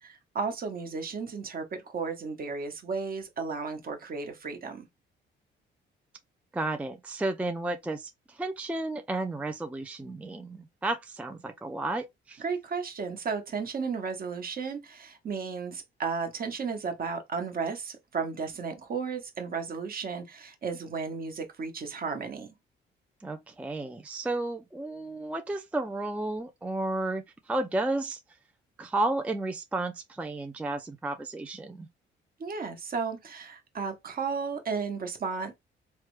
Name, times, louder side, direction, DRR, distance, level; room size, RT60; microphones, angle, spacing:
voice 1, 0.0-4.9 12.4-22.5 32.4-35.6, right 5 dB, 45° right, 1.0 m, -34 dB
voice 2, 6.5-12.4 23.2-28.2 28.8-31.9, right 2 dB, 5° right, 0.4 m, -32 dB
3.3 x 2.1 x 3.1 m
cardioid pair, 90°, 20 cm